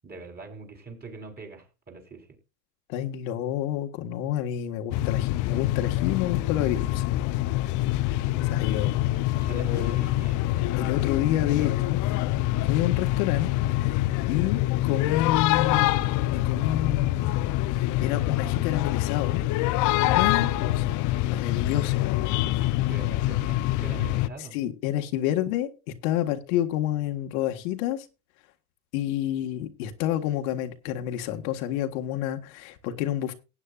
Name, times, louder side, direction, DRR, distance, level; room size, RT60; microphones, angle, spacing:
voice 1, 0.0-2.4 8.2-8.7 9.3-10.5 11.5-12.3 20.3-20.6 22.6-24.6, right 4 dB, 20° right, 4.3 m, -43 dB
voice 2, 2.9-7.0 8.5-8.9 9.4-10.0 10.7-12.0 12.7-17.4 18.0-19.4 20.0-20.7 21.3-22.0 24.5-25.7 26.0-28.1 28.9-33.3, left 12 dB, 65° left, 1.7 m, -29 dB
sound 1, 4.9-24.3, left 16 dB, 45° left, 0.7 m, -25 dB
18.5 x 9.2 x 2.4 m
supercardioid pair, 120°, 44 cm